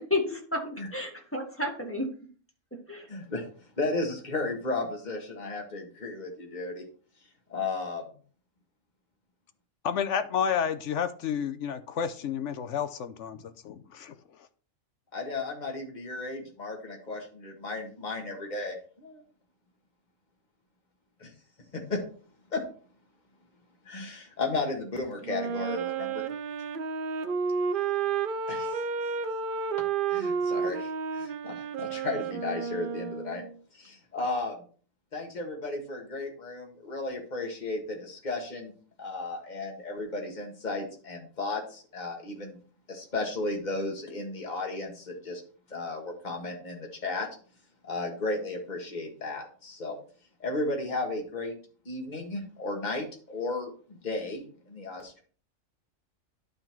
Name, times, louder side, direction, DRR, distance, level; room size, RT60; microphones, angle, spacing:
voice 1, 0.0-2.1 2.7-3.1, left 2 dB, 10° left, 0 dB, 1.8 m, -31 dB
voice 2, 3.1-3.4 3.8-6.8 7.5-8.1 15.1-19.2 21.2-21.3 21.7-22.0 22.5-22.6 23.8-26.3 28.5-28.8 30.1-33.4 33.7-34.6 35.1-38.7 39.0-42.6 42.9-45.4 45.7-47.3 47.8-50.0 50.4-51.5 51.8-55.2, left 3 dB, 35° left, 1 dB, 1.9 m, -34 dB
voice 3, 9.8-14.1, left 7 dB, 70° left, 11 dB, 1.0 m, -30 dB
Wind instrument woodwind instrument, 25.2-33.5, right 5 dB, 50° right, 0.7 m, -31 dB
11.5 x 3.9 x 4.5 m, 0.42 s
omnidirectional pair, 1.3 m